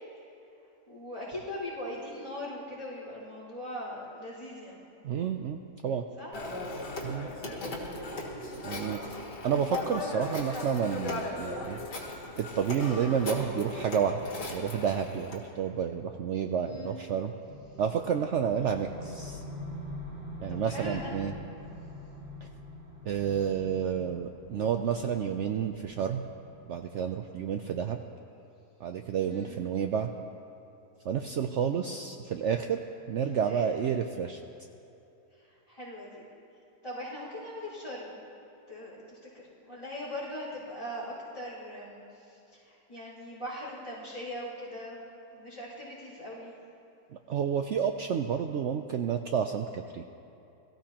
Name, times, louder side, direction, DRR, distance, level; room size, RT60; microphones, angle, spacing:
voice 1, 0.9-4.8 6.2-6.3 7.4-7.7 11.2-11.5 16.6-16.9 20.5-21.1 29.2-29.5 33.3-33.6 35.3-36.2 36.8-38.1 38.7-45.0 45.3-46.5, left 1 dB, 15° left, -14 dB, 4.0 m, -40 dB
voice 2, 5.0-6.0 7.0-7.3 8.6-9.0 9.4-11.8 12.4-17.3 17.8-19.4 20.4-21.3 23.0-26.2 26.7-28.0 28.8-30.1 31.0-32.8 33.1-34.4 47.3-50.0, right 7 dB, 90° right, 5 dB, 0.6 m, -30 dB
Telephone, 6.3-15.4, left 2 dB, 75° left, 2.3 m, -37 dB
sound 1, 17.5-27.5, left 1 dB, 70° right, 2.8 m, -45 dB
22.0 x 15.0 x 2.9 m, 2.9 s
omnidirectional pair, 1.8 m